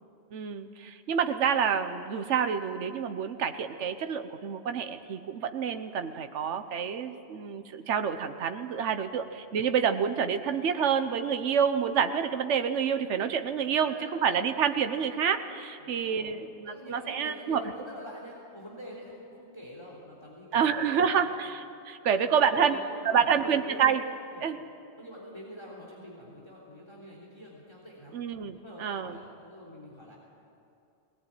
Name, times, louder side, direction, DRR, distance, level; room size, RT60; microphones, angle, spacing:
voice 1, 0.3-17.6 20.5-22.8 23.0-24.0 24.4-24.6 28.1-29.2, right 7 dB, 75° right, 8 dB, 1.2 m, -28 dB
voice 2, 13.6-14.2 15.8-16.3 16.7-21.3 22.1-24.0 24.3-24.5 25.0-28.2 28.6-30.2, equal, 25° left, -3 dB, 3.4 m, -46 dB
19.5 x 19.0 x 9.1 m, 2.6 s
omnidirectional pair, 1.2 m